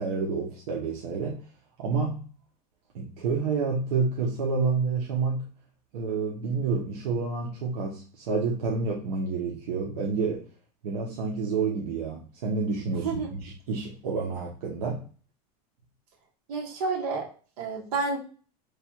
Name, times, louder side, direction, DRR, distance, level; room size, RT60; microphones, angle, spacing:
voice 1, 0.0-1.4 1.8-2.2 2.9-5.5 5.9-10.4 10.8-15.0, right 4 dB, 85° right, -2 dB, 0.9 m, -29 dB
voice 2, 16.5-17.3 17.6-18.2, right 4 dB, 70° right, 0 dB, 1.4 m, -29 dB
3.2 x 2.3 x 4.3 m, 0.39 s
supercardioid pair, 165°, 20 cm